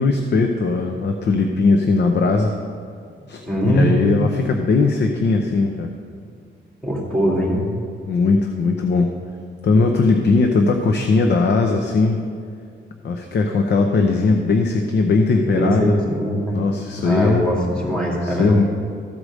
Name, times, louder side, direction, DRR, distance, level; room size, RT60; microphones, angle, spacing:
voice 1, 0.0-2.5 3.3-5.9 8.1-9.1 9.6-12.2 13.0-16.0 16.5-17.5 18.2-18.6, left 3 dB, 60° left, 4 dB, 0.7 m, -19 dB
voice 2, 3.5-4.2 6.8-7.6 15.4-16.5 17.0-18.6, equal, 5° left, -3 dB, 2.5 m, -21 dB
13.5 x 4.9 x 6.3 m, 2.2 s
cardioid pair, 120°, 20 cm